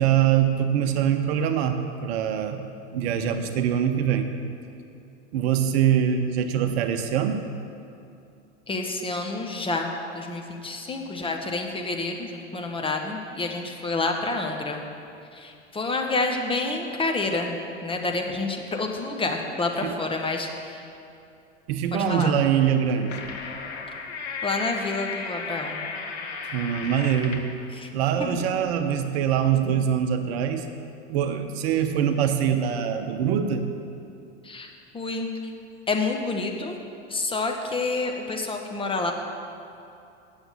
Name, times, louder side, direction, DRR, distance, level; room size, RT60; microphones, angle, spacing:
voice 1, 0.0-2.6 2.9-4.3 5.3-7.4 19.8-19.9 21.7-23.2 26.5-27.5 27.9-30.7 31.1-33.6, right 9 dB, 55° right, 7 dB, 0.9 m, -23 dB
voice 2, 8.7-14.8 15.3-20.9 22.1-22.3 24.4-25.8 27.7-27.9 28.2-28.4 34.4-35.3 35.9-36.8 37.1-39.1, left 3 dB, 15° left, 2 dB, 1.1 m, -28 dB
sound 1, 22.7-27.5, left 4 dB, 65° left, 1.2 m, -35 dB
9.0 x 7.2 x 6.9 m, 2.6 s
figure-of-eight pair, 85°, 36 cm